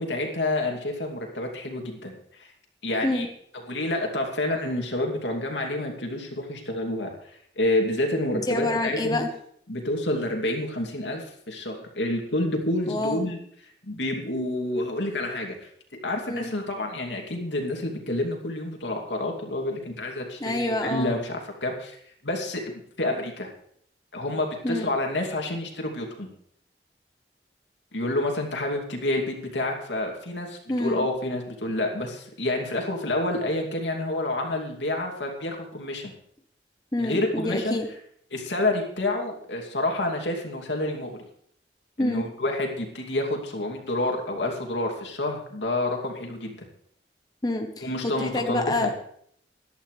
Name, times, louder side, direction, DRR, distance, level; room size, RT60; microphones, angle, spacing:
voice 1, 0.0-2.5 2.8-3.3 3.7-7.1 7.6-9.2 9.7-13.4 13.9-15.7 16.0-22.0 22.2-22.6 23.0-23.5 24.1-26.3 27.9-36.1 37.0-37.8 38.3-41.1 42.0-46.6 47.8-48.9, left 1 dB, 90° left, 1 dB, 2.7 m, -28 dB
voice 2, 8.3-9.3 12.9-13.3 16.3-16.5 20.4-21.1 24.6-24.9 30.7-31.1 36.9-37.9 42.0-42.3 47.4-49.0, left 2 dB, 20° left, 4 dB, 0.9 m, -27 dB
16.5 x 11.5 x 3.3 m, 0.67 s
head